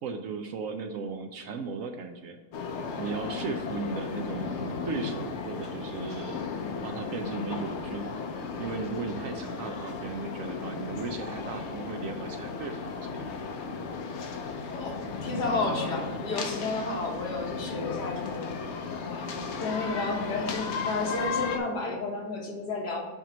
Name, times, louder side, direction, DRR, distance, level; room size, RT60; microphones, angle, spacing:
voice 1, 0.0-2.4 3.0-6.4 6.8-8.1 8.6-13.2, right 4 dB, 70° right, 6 dB, 0.8 m, -36 dB
sound 1, 2.5-21.6, left 4 dB, 60° left, 0.8 m, -35 dB
voice 2, 14.7-18.4 19.0-19.3 19.6-23.0, left 3 dB, 85° left, 0 dB, 1.8 m, -32 dB
8.0 x 3.0 x 6.0 m, 1.3 s
omnidirectional pair, 1.7 m